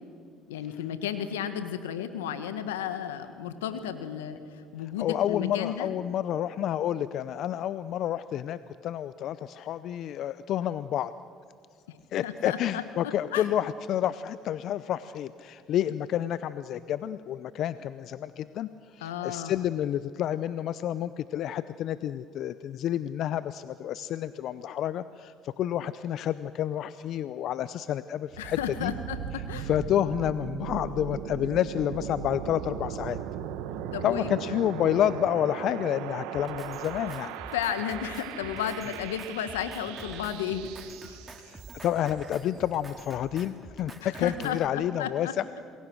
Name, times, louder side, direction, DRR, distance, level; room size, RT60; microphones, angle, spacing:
voice 1, 0.5-5.9 11.9-12.0 12.2-12.8 13.3-13.5 19.0-19.6 28.4-29.2 29.5-29.7 33.9-34.3 37.0-37.1 37.5-40.7 41.0-41.2 44.0-45.3, left 9 dB, 90° left, 10 dB, 1.6 m, -33 dB
voice 2, 5.0-11.1 12.1-28.9 29.6-33.2 34.0-37.3 41.4-45.4, left 11 dB, 60° left, 14 dB, 0.6 m, -29 dB
sound 1, 28.3-42.1, right 10 dB, 75° right, 1.4 m, -38 dB
Drum kit, 36.3-44.7, right 3 dB, 25° right, 2.1 m, -47 dB
28.0 x 21.0 x 6.3 m, 2.2 s
hypercardioid pair, 70°, 0 cm